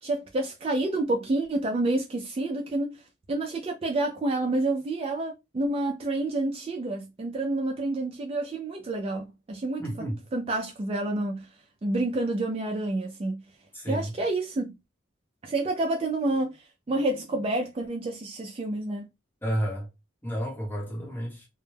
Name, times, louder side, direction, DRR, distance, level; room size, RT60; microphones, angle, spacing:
voice 1, 0.0-11.5 11.8-13.4 13.9-14.8 15.4-19.1, right 2 dB, 30° right, 0.3 m, -29 dB
voice 2, 9.8-10.2 13.7-14.1 19.4-19.9 20.2-21.5, equal, 10° left, 0.8 m, -31 dB
2.1 x 2.0 x 3.2 m
head